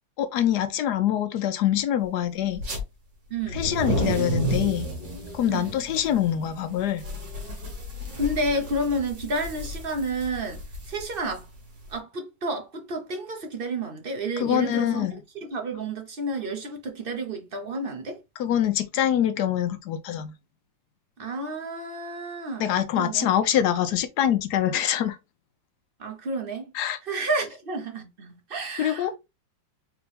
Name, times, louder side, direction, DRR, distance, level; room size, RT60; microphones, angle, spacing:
voice 1, 0.2-2.6 3.5-4.9 5.3-7.0 14.4-15.2 18.4-20.3 22.6-25.2 26.7-27.0 28.8-29.1, left 10 dB, 70° left, 1.1 m, -24 dB
sound 1, 2.5-2.8 3.4-11.9, right 1 dB, 75° right, 2.2 m, -32 dB
voice 2, 3.3-3.6 5.5-5.7 8.2-11.5 11.9-15.1 15.4-18.2 21.2-23.3 26.0-26.6 27.0-29.2, right 1 dB, 40° right, 0.9 m, -30 dB
4.7 x 3.0 x 3.4 m
omnidirectional pair, 2.0 m